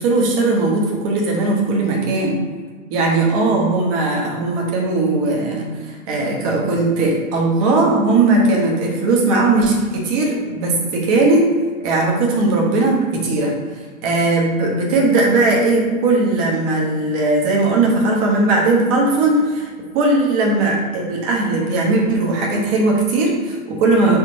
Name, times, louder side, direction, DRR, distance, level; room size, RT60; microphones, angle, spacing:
voice 1, 0.0-2.4 2.9-11.4 11.8-19.7 19.9-24.2, right 2 dB, 25° right, -2 dB, 0.8 m, -18 dB
4.0 x 3.7 x 2.6 m, 1.5 s
hypercardioid pair, 130°, 42 cm